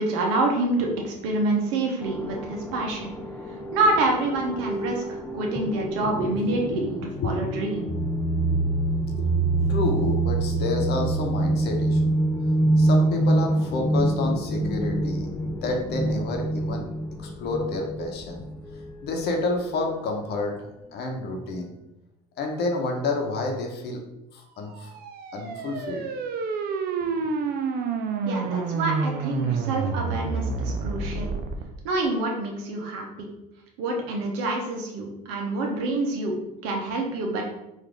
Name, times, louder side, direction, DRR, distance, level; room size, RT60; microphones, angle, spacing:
voice 1, 0.0-3.1 3.5-7.9 28.2-31.3 31.8-33.3 33.8-37.4, right 2 dB, 75° right, 1 dB, 1.0 m, -27 dB
sound 1, 2.0-19.2, right 2 dB, 10° left, 0.4 m, -26 dB
voice 2, 6.2-6.9 7.2-7.3 9.2-12.3 12.8-16.8 17.2-18.4 19.0-21.7 22.4-24.0 24.3-24.9 25.3-26.1 27.0-27.3, left 3 dB, 55° left, 2 dB, 0.9 m, -30 dB
sound 2, 24.7-31.6, right 5 dB, 50° right, 0.6 m, -29 dB
4.0 x 2.7 x 3.3 m, 0.89 s
supercardioid pair, 85°, 20 cm